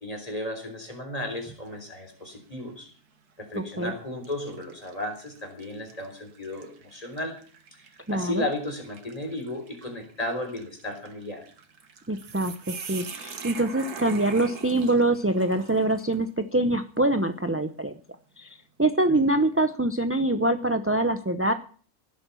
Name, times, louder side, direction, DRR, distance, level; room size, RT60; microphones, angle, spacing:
voice 1, 0.0-2.9 3.4-7.4 7.7-7.8 8.1-11.4, left 1 dB, 25° left, 4 dB, 3.6 m, -34 dB
sound 1, 1.3-1.8 2.3-2.4 3.4-3.6 4.2-16.3, right 6 dB, 85° right, 1.9 m, -44 dB
voice 2, 8.1-8.4 12.1-17.9 18.4-21.5, right 2 dB, 15° right, 9 dB, 0.4 m, -24 dB
17.0 x 7.9 x 7.0 m, 0.43 s
omnidirectional pair, 1.6 m